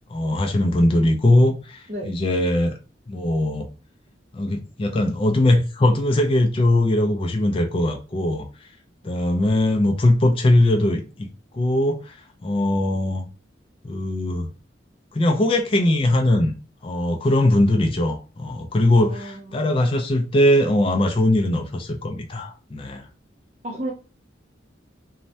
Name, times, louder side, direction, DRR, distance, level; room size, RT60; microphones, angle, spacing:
voice 1, 0.1-2.7 3.1-3.7 4.3-8.7 9.0-11.3 11.5-12.2 12.4-13.2 13.8-14.5 15.1-16.6 16.8-23.1, left 1 dB, 30° left, 0.3 m, -20 dB
voice 2, 18.9-19.7 23.6-23.9, right 1 dB, 40° right, 0.7 m, -33 dB
3.1 x 2.1 x 2.7 m
head